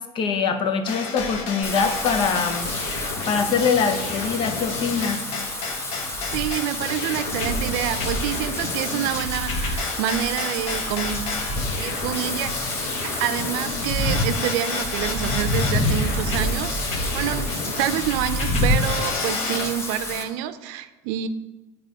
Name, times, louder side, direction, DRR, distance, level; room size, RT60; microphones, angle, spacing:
voice 1, 0.1-2.7 3.3-5.2, left 5 dB, 45° left, 7 dB, 0.7 m, -23 dB
sound 1, 0.9-19.7, left 3 dB, 75° left, 1.0 m, -30 dB
Wind / Rain, 1.6-20.2, left 1 dB, 20° left, 1.0 m, -29 dB
voice 2, 6.3-11.2 11.8-12.5 13.0-21.3, right 11 dB, 85° right, 11 dB, 0.5 m, -27 dB
9.0 x 3.0 x 5.2 m, 1.1 s
cardioid pair, 140°, 11 cm